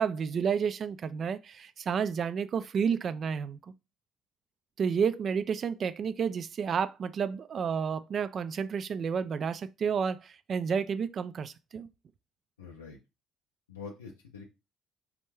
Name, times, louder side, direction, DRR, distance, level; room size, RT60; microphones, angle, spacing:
voice 1, 0.0-3.6 4.8-11.9, right 6 dB, 45° right, 0.3 m, -30 dB
voice 2, 12.6-13.0 13.7-14.5, left 5 dB, 85° left, 0.4 m, -45 dB
3.5 x 2.2 x 2.9 m
hypercardioid pair, 50°, 0 cm